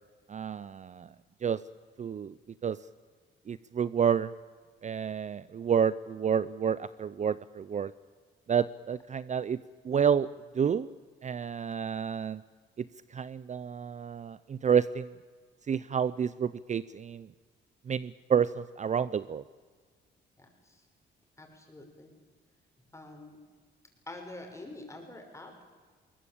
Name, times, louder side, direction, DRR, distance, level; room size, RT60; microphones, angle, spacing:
voice 1, 0.3-1.1 1.4-1.6 2.0-2.3 2.6-2.8 3.5-4.3 4.8-7.9 8.5-10.3 10.5-10.9 11.2-12.4 12.8-15.1 15.7-17.3 17.9-19.4, right 7 dB, 35° right, 17 dB, 0.6 m, -29 dB
voice 2, 20.4-20.8 21.4-22.1 22.8-23.4 24.1-25.6, left 2 dB, 15° left, 2 dB, 6.1 m, -46 dB
21.5 x 19.0 x 8.6 m, 1.5 s
cardioid pair, 90°, 20 cm